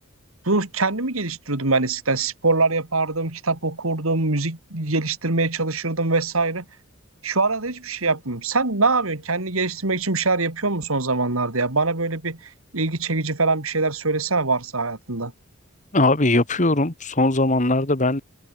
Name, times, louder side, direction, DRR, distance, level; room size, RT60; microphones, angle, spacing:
voice 1, 0.4-6.6 7.2-12.4 12.7-15.3, right 3 dB, 80° right, 2.9 m, -23 dB
voice 2, 15.9-18.2, left 2 dB, 35° left, 2.1 m, -20 dB
open air
head